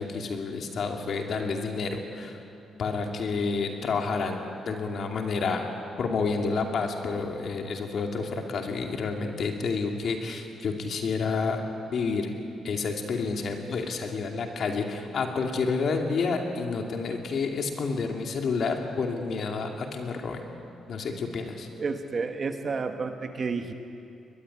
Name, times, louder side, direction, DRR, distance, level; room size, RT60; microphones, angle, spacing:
voice 1, 0.0-2.4 2.8-5.7 6.0-11.6 11.9-12.3 12.6-20.4 20.9-21.7, left 4 dB, 45° left, 3 dB, 2.7 m, -29 dB
voice 2, 21.8-23.7, right 4 dB, 30° right, 6 dB, 1.3 m, -30 dB
22.0 x 21.5 x 9.9 m, 2.7 s
cardioid pair, 175°, 0 cm